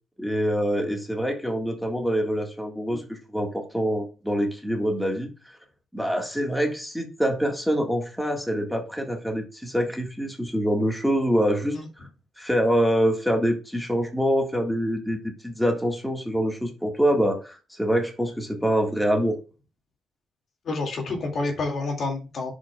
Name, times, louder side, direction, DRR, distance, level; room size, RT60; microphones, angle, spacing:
voice 1, 0.2-5.6 5.9-12.1 12.4-19.4, equal, ahead, 1.6 m, -25 dB
voice 2, 20.6-22.5, left 3 dB, 55° left, 2.2 m, -29 dB
11.0 x 5.1 x 2.3 m
cardioid pair, 90°, 0 cm